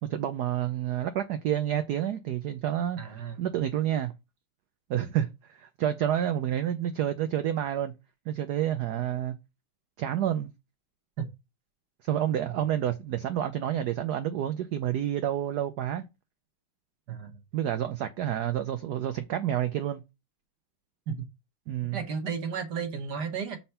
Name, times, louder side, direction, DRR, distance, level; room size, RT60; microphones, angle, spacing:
voice 1, 0.0-3.0 3.4-4.1 4.9-7.9 8.3-9.4 10.0-10.5 12.0-16.0 17.5-20.0 21.7-22.0, right 11 dB, 75° right, 0.9 m, -29 dB
voice 2, 3.0-3.4 11.2-11.3 12.4-12.6 17.1-17.4 21.1-21.2 21.9-23.6, right 6 dB, 55° right, 1.5 m, -33 dB
5.8 x 4.4 x 5.5 m
omnidirectional pair, 2.3 m